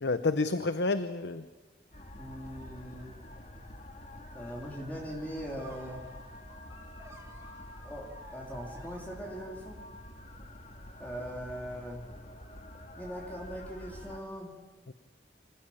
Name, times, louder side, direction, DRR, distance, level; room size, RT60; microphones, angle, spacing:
voice 1, 0.0-1.5 14.9-15.0, left 3 dB, 70° left, 11 dB, 0.8 m, -29 dB
sound 1, 1.9-14.2, left 1 dB, 40° left, 2.0 m, -48 dB
voice 2, 2.2-3.2 4.3-6.0 7.8-9.8 11.0-12.0 13.0-14.5, equal, 10° left, -2 dB, 3.1 m, -40 dB
sound 2, 5.6-9.7, right 3 dB, 15° right, 2.0 m, -54 dB
25.5 x 16.0 x 8.5 m, 1.3 s
head